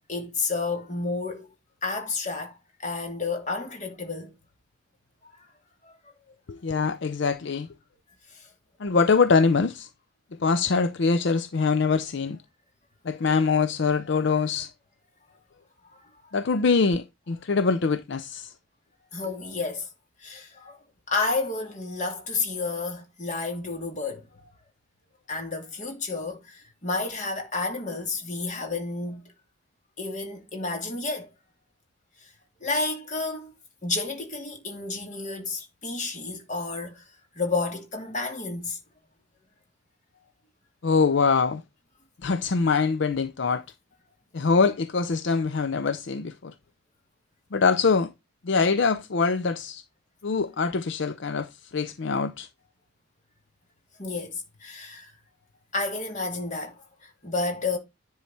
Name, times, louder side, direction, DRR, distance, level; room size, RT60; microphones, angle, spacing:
voice 1, 0.1-1.5 1.8-4.3 5.3-5.4 5.8-6.0 8.3-8.5 15.9-16.0 19.1-19.9 20.2-20.8 21.1-24.5 25.3-29.2 30.0-31.3 32.2-32.3 32.6-33.5 33.8-37.0 37.3-38.8 54.0-55.1 55.7-57.8, left 3 dB, 35° left, 2.7 m, -31 dB
voice 2, 6.5-7.7 8.8-9.9 10.3-12.4 13.0-14.7 16.3-18.5 19.2-19.3 40.8-41.6 42.2-43.6 44.3-46.5 47.5-48.1 48.4-49.8 50.2-52.5, left 4 dB, 60° left, 0.5 m, -24 dB
10.0 x 4.7 x 4.3 m
head